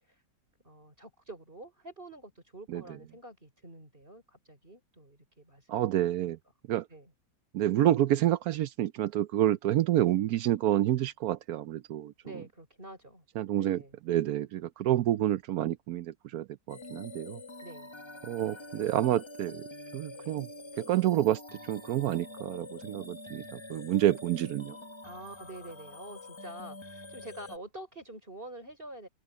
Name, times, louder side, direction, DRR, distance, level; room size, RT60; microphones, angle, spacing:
voice 1, 0.6-6.3 6.9-7.1 12.2-13.2 13.6-14.0 17.6-17.9 25.0-29.1, right 1 dB, 30° right, 5.2 m, -47 dB
voice 2, 5.7-6.4 6.7-6.8 7.5-12.1 13.4-13.8 14.1-17.4 18.2-19.6 19.9-20.5 20.8-21.4 21.7-24.8, right 12 dB, 70° right, 1.0 m, -28 dB
sound 1, 16.7-27.6, left 2 dB, 20° left, 0.9 m, -46 dB
omnidirectional pair, 1.8 m